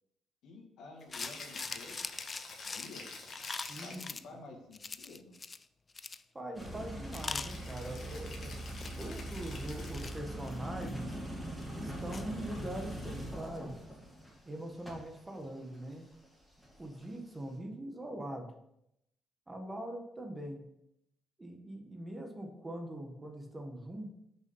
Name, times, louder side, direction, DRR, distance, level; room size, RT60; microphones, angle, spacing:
voice 1, 0.4-2.3 2.6-3.2 3.8-5.4, left 3 dB, 80° left, 0 dB, 1.9 m, -51 dB
Rattle (instrument), 1.0-4.2 7.1-10.3, left 3 dB, 55° left, 1.7 m, -48 dB
sound 1, 1.1-4.2 4.7-5.6 5.9-6.2 6.6-6.7 7.1-8.3 8.6-9.0 9.5-11.2 11.6-11.7 12.1-12.2, left 4 dB, 30° left, 0.4 m, -42 dB
voice 2, 3.7-4.0 6.3-8.5 9.0-13.8 14.4-16.1 16.8-18.5 19.5-20.6 21.4-24.1, right 1 dB, 20° right, 4 dB, 1.4 m, -42 dB
sound 2, 6.5-17.1, right 1 dB, ahead, 2.8 m, -42 dB
6.3 x 5.3 x 5.4 m, 0.81 s
cardioid pair, 90°, 0 cm